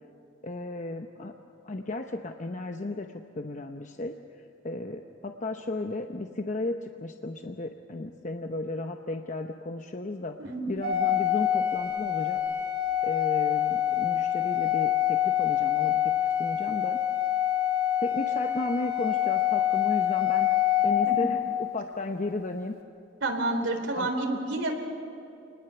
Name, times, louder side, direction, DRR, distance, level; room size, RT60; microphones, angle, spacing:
voice 1, 0.4-1.3 1.6-3.1 3.4-4.2 4.6-10.4 10.7-12.4 13.0-16.1 16.4-17.0 18.0-20.5 20.8-22.8 24.0-24.1, left 2 dB, 40° left, 5 dB, 0.9 m, -34 dB
voice 2, 10.4-10.7 21.1-21.2 23.2-24.7, right 2 dB, 80° right, 4 dB, 3.6 m, -29 dB
Organ, 10.8-21.7, left 11 dB, 55° right, 2.8 m, -26 dB
28.0 x 20.0 x 7.0 m, 2.8 s
head